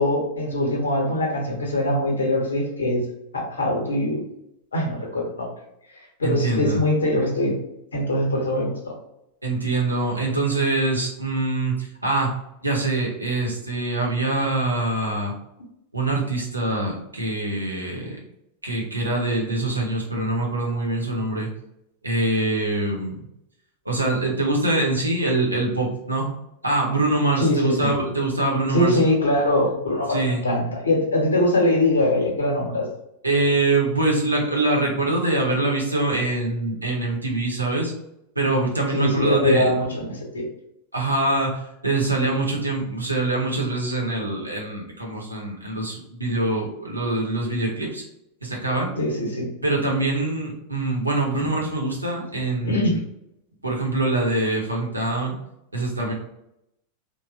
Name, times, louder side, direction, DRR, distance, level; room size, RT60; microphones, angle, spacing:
voice 1, 0.0-3.0 3.3-4.2 4.7-5.5 6.2-7.5 7.9-8.9 27.4-27.9 28.7-32.9 38.9-40.5 49.0-49.5 51.4-51.5 52.6-52.9, left 1 dB, 75° left, 0 dB, 0.9 m, -22 dB
voice 2, 6.2-6.8 9.4-12.3 12.6-15.3 15.9-18.2 18.6-21.5 22.0-23.2 23.8-26.3 26.6-29.0 30.1-30.4 33.2-37.9 38.4-39.8 40.9-48.0 48.4-48.9 49.6-53.0 53.6-55.3 55.7-56.1, right 2 dB, 85° right, -1 dB, 0.8 m, -24 dB
3.0 x 2.2 x 2.4 m, 0.81 s
figure-of-eight pair, 90°, 0 cm